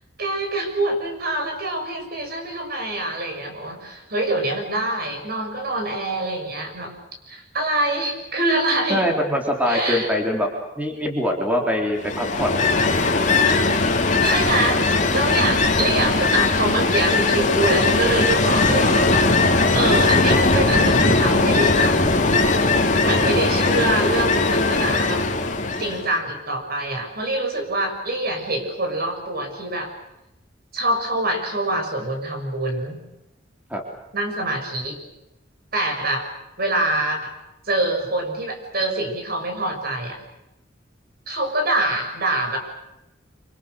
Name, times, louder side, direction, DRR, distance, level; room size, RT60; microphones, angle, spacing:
voice 1, 0.2-6.9 7.2-9.1 9.6-10.1 14.2-14.8 15.1-19.3 19.7-22.0 23.0-25.2 25.8-29.9 30.7-33.0 34.1-35.0 35.7-36.3 36.6-37.3 37.6-40.2 41.3-42.6, right 2 dB, 55° right, 4 dB, 6.5 m, -25 dB
voice 2, 8.9-10.5 10.8-12.6 33.7-33.8, equal, 10° right, 1 dB, 3.6 m, -23 dB
Ocean, 12.0-26.1, left 3 dB, 40° left, 2.9 m, -19 dB
26.5 x 26.5 x 6.6 m, 0.93 s
head